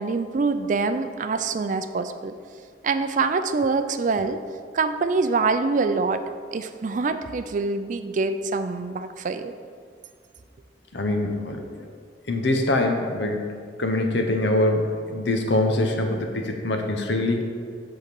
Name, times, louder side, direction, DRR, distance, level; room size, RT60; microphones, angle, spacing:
voice 1, 0.0-2.3 2.8-4.4 4.7-6.2 6.5-9.5, right 4 dB, 45° right, 9 dB, 0.4 m, -25 dB
voice 2, 10.9-11.9 12.3-17.4, left 1 dB, 75° left, 4 dB, 1.0 m, -24 dB
8.2 x 3.8 x 6.9 m, 2.1 s
head